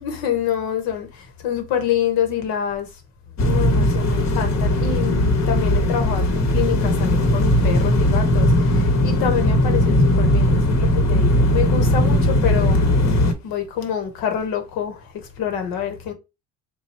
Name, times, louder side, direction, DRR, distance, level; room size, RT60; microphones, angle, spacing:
voice 1, 0.0-2.9 3.4-13.2 13.4-16.1, left 8 dB, 75° left, 1.2 m, -26 dB
sound 1, 3.4-13.3, left 1 dB, 45° left, 1.1 m, -18 dB
3.2 x 2.3 x 4.2 m
supercardioid pair, 80°, 37 cm